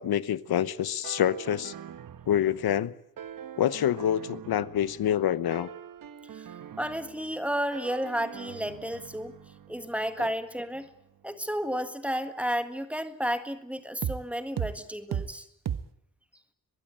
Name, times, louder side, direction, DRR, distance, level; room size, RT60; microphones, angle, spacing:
voice 1, 0.0-1.7 2.3-2.9 3.6-5.7 10.2-10.3, left 10 dB, 85° left, 16 dB, 1.1 m, -26 dB
sound 1, 1.0-2.8 3.2-5.2 5.5-7.5 7.7-11.4 14.0-14.2 14.6-14.8 15.1-15.3 15.7-15.9, right 9 dB, 65° right, 1.3 m, -40 dB
voice 2, 6.8-9.4 9.7-10.9 11.2-15.5, equal, 5° right, 9 dB, 1.7 m, -32 dB
23.5 x 21.5 x 8.9 m, 0.77 s
wide cardioid pair, 175°, 36 cm